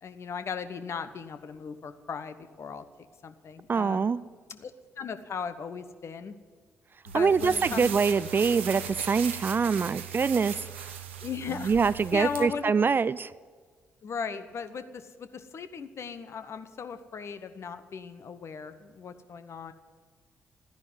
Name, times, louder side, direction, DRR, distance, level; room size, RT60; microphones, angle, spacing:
voice 1, 0.0-2.8 3.2-4.1 4.5-4.7 5.0-6.3 7.1-7.9 11.2-11.7 12.1-12.7 14.0-19.7, left 6 dB, 50° left, 11 dB, 1.1 m, -37 dB
voice 2, 3.7-4.2 7.1-10.9 11.6-13.3, right 5 dB, 35° right, 18 dB, 0.4 m, -25 dB
sound 1, 7.1-12.4, right 8 dB, 85° right, 0.9 m, -38 dB
14.0 x 10.5 x 9.4 m, 1.5 s
figure-of-eight pair, 40°, 6 cm